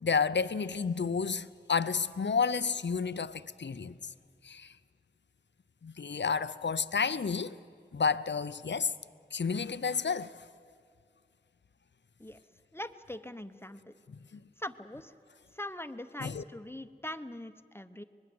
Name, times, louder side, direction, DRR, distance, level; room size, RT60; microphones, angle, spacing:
voice 1, 0.0-4.0 4.4-4.7 5.8-7.6 7.9-8.9 9.3-10.4 14.1-14.4 16.2-16.4, left 5 dB, 90° left, 0.6 m, -31 dB
voice 2, 12.7-13.9 14.6-15.1 15.5-18.0, left 1 dB, 15° left, 0.8 m, -42 dB
24.5 x 20.5 x 7.8 m
wide cardioid pair, 45°, 18 cm